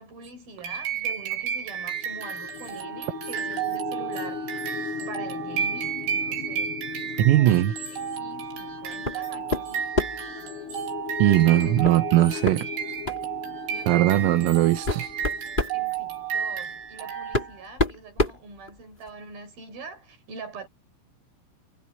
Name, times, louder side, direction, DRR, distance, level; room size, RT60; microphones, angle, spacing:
voice 1, 0.0-4.5 5.1-10.0 11.2-11.8 13.7-14.8 15.7-20.7, right 3 dB, 45° right, 8.0 m, -44 dB
sound 1, 0.6-17.7, right 8 dB, 65° right, 6.3 m, -32 dB
sound 2, 1.7-16.8, left 7 dB, 80° left, 4.2 m, -38 dB
voice 2, 7.2-7.7 11.2-12.7 13.9-15.1, right 15 dB, 85° right, 3.9 m, -19 dB
sound 3, 9.0-9.2 9.5-10.3 11.8-12.0 12.4-12.6 13.0-13.3 14.1-14.2 14.7-15.8 16.8-16.9 17.3-19.1, left 2 dB, 10° left, 2.5 m, -27 dB
omnidirectional pair, 5.9 m